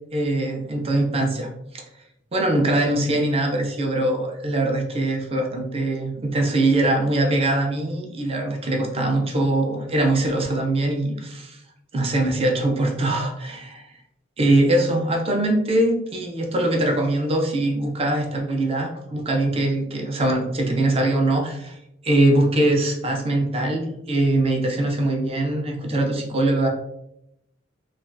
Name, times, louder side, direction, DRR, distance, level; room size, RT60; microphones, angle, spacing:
voice 1, 0.1-1.5 1.7-1.8 2.3-11.6 11.9-13.8 14.4-21.8 22.0-26.7, right 1 dB, 30° right, 2 dB, 0.5 m, -22 dB
3.2 x 2.3 x 2.5 m, 0.81 s
head